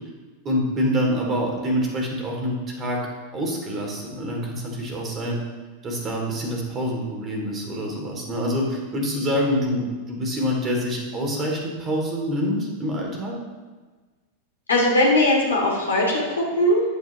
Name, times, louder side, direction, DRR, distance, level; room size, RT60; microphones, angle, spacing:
voice 1, 0.4-3.1 3.3-5.4 5.8-13.4, equal, 25° right, 0 dB, 3.0 m, -26 dB
voice 2, 14.7-16.8, left 1 dB, 70° left, -2 dB, 3.0 m, -20 dB
14.5 x 9.3 x 3.2 m, 1.3 s
figure-of-eight pair, 90°, 0 cm